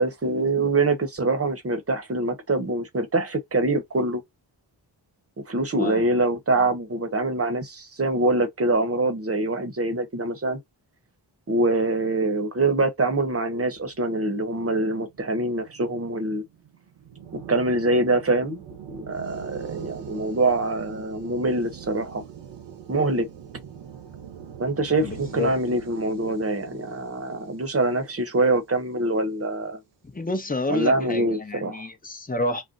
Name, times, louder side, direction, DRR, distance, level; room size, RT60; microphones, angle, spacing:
voice 1, 0.0-4.2 5.5-10.6 11.5-16.4 17.5-18.6 18.9-22.2 22.9-23.3 24.6-29.8 30.7-31.8, right 2 dB, 35° right, 0.9 m, -24 dB
sound 1, 13.8-29.2, right 8 dB, 85° right, 0.9 m, -43 dB
voice 2, 25.0-25.5 30.1-32.6, left 2 dB, 20° left, 0.8 m, -29 dB
2.6 x 2.1 x 3.8 m
cardioid pair, 70°, 43 cm